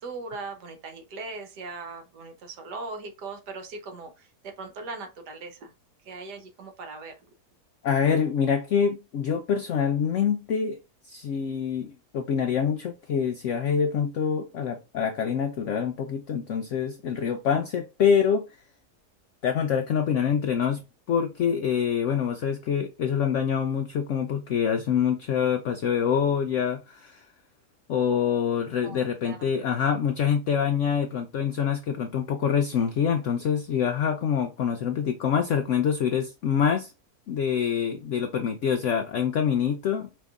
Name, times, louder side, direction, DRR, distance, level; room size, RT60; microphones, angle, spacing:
voice 1, 0.0-5.7 6.0-7.1 28.8-29.5, right 3 dB, 75° right, 1.5 m, -39 dB
voice 2, 7.8-10.8 11.0-18.5 19.4-20.8 21.1-27.2 27.9-36.9 37.3-40.1, left 7 dB, 75° left, 0.6 m, -25 dB
5.2 x 2.9 x 3.5 m
omnidirectional pair, 1.8 m